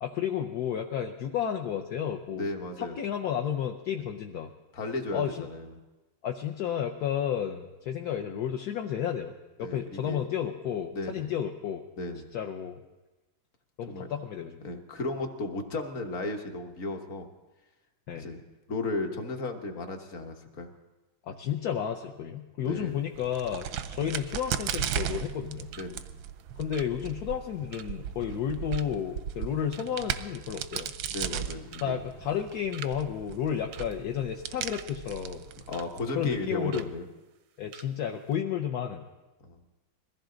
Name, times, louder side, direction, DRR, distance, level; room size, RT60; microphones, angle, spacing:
voice 1, 0.0-2.5 2.8-4.5 5.1-5.5 6.2-9.3 9.6-11.8 12.3-12.8 13.8-14.6 18.1-18.3 21.3-25.7 26.6-30.9 31.8-35.5 36.1-36.9 37.6-39.0, left 9 dB, 65° left, 3 dB, 1.1 m, -32 dB
voice 2, 2.3-3.0 4.0-4.1 4.7-5.8 9.6-10.3 10.9-11.3 12.0-12.3 13.9-14.1 14.6-17.3 18.1-18.4 18.7-20.7 22.6-23.1 25.8-26.0 31.1-32.0 35.7-37.0 39.4-39.6, left 2 dB, 45° left, 4 dB, 1.5 m, -35 dB
sound 1, 22.9-23.5 23.7-23.9 24.2-28.4 28.7-29.1 29.5-30.1 30.4-30.5 30.7-31.1 31.7-31.9 32.2-33.0 33.2-33.4 33.7-34.9 35.3-35.9 36.2-36.3 36.7-36.9 37.3-37.4 37.7-37.9 38.2-38.3, right 10 dB, 70° right, 0.9 m, -47 dB
Crack, 23.1-36.4, right 9 dB, 90° right, 1.5 m, -37 dB
21.5 x 15.0 x 3.8 m, 1.1 s
omnidirectional pair, 2.1 m